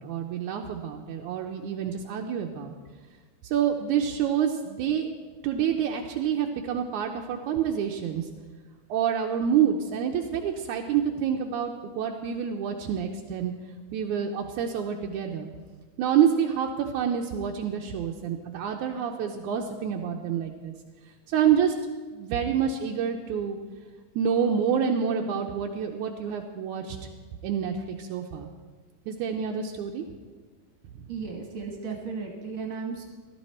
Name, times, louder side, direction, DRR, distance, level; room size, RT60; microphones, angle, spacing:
voice 1, 0.0-2.7 3.4-5.1 5.4-8.3 8.9-13.5 13.9-15.5 16.0-20.7 21.3-21.7 22.1-23.6 24.2-27.0 27.4-28.5 29.1-30.1, right 8 dB, 85° right, 2 dB, 1.7 m, -27 dB
voice 2, 31.1-33.0, right 5 dB, 55° right, 1 dB, 1.6 m, -35 dB
15.5 x 12.5 x 4.3 m, 1.4 s
omnidirectional pair, 4.3 m